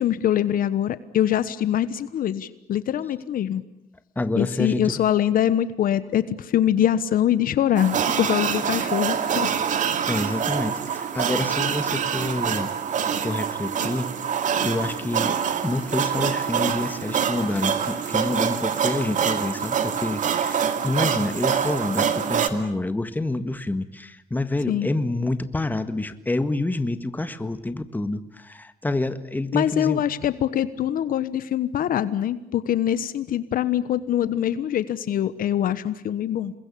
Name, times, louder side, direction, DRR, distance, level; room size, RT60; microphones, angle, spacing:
voice 1, 0.0-3.6 4.3-9.5 10.1-10.2 24.7-24.9 29.5-36.5, left 10 dB, 55° left, 15 dB, 1.2 m, -23 dB
voice 2, 4.1-5.0 10.1-12.7 13.2-14.1 14.6-30.0, left 2 dB, 10° left, 11 dB, 1.6 m, -28 dB
sound 1, 7.8-22.5, right 7 dB, 50° right, 2.4 m, -25 dB
28.5 x 22.0 x 8.5 m, 0.83 s
cardioid pair, 110°, 17 cm